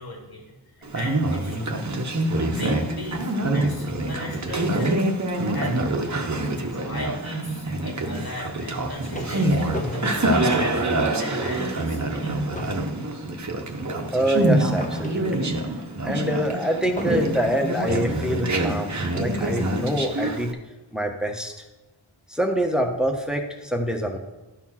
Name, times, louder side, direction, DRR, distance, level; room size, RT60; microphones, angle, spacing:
voice 1, 0.0-1.9 2.4-5.0 5.5-10.8 11.2-12.7, equal, 50° left, -2 dB, 2.4 m, -37 dB
Conversation, 0.8-20.5, right 1 dB, 35° right, 1.0 m, -26 dB
sound 1, 8.7-11.3 11.7-11.9 12.2-15.7 17.0-17.7 18.6-18.7 19.4-19.9, left 1 dB, 15° left, 1.2 m, -37 dB
voice 2, 14.1-15.5 16.0-20.5 20.9-21.5 22.3-24.2, equal, ahead, 2 dB, 1.3 m, -25 dB
12.0 x 4.4 x 5.9 m, 1.1 s
wide cardioid pair, 70°, 49 cm